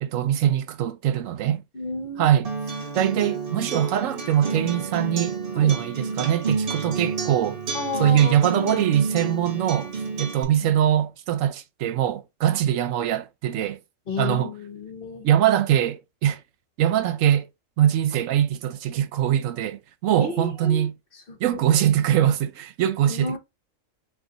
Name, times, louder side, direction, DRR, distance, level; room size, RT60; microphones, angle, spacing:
voice 1, 0.0-1.6 2.2-2.5 2.9-7.6 8.0-9.9 10.2-13.8 14.2-14.5 15.2-16.4 16.8-17.5 17.8-21.0 21.4-23.4, right 10 dB, 80° right, 0.9 m, -22 dB
voice 2, 1.7-2.4 5.5-5.8 7.7-8.8 10.6-10.7 14.1-15.3 20.2-20.9 21.3-21.4 23.1-23.4, left 3 dB, 45° left, 1.1 m, -32 dB
Acoustic guitar, 2.4-10.4, right 4 dB, 45° right, 1.0 m, -30 dB
4.1 x 2.7 x 3.8 m
omnidirectional pair, 1.3 m